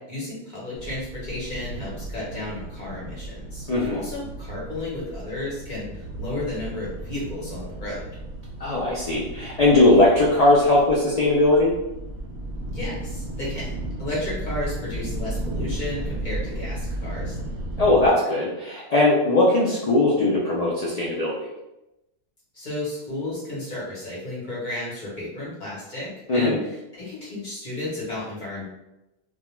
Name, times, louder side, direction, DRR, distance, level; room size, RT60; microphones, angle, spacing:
voice 1, 0.1-8.0 12.7-17.4 22.5-28.6, left 1 dB, 45° left, -7 dB, 0.9 m, -33 dB
sound 1, 0.8-18.1, right 1 dB, 65° right, 0.7 m, -34 dB
voice 2, 3.7-4.0 8.6-11.7 17.8-21.4 26.3-26.6, left 2 dB, 85° left, -4 dB, 0.3 m, -19 dB
2.2 x 2.2 x 3.0 m, 0.93 s
omnidirectional pair, 1.2 m